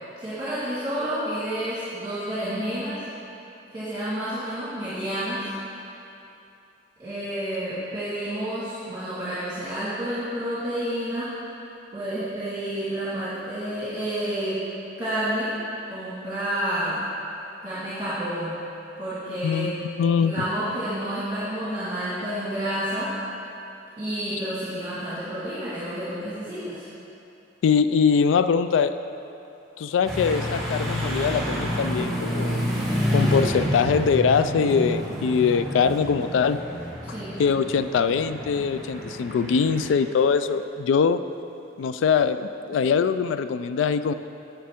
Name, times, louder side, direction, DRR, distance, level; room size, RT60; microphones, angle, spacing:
voice 1, 0.2-3.0 3.7-5.5 7.0-11.3 11.9-14.6 15.0-15.5 15.9-17.0 17.6-18.6 19.0-19.7 20.2-23.1 24.0-26.8 37.0-37.5, right 1 dB, 25° right, -12 dB, 1.7 m, -29 dB
voice 2, 20.0-20.3 27.6-29.0 29.8-32.6 33.1-36.6 37.4-41.2 41.8-44.1, left 6 dB, 85° left, 12 dB, 0.3 m, -22 dB
sound 1, 30.1-39.9, equal, ahead, 1.5 m, -29 dB
8.9 x 7.6 x 3.5 m, 2.8 s
head